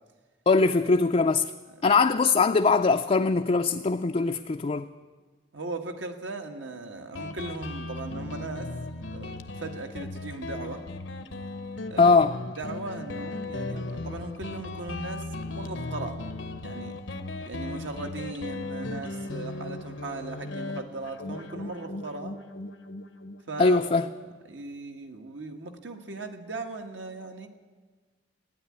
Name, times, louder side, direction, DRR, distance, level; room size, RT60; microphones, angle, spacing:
voice 1, 0.5-1.5 1.8-4.9 12.0-12.3 23.6-24.1, left 4 dB, 35° left, 0.4 m, -21 dB
voice 2, 5.5-8.7 9.1-10.8 11.9-12.2 12.6-16.2 16.6-17.0 17.5-22.4 23.5-23.8 24.2-27.5, right 3 dB, 75° right, 1.5 m, -38 dB
Guitar, 7.2-24.4, left 2 dB, 70° left, 0.8 m, -37 dB
15.5 x 9.6 x 9.7 m
head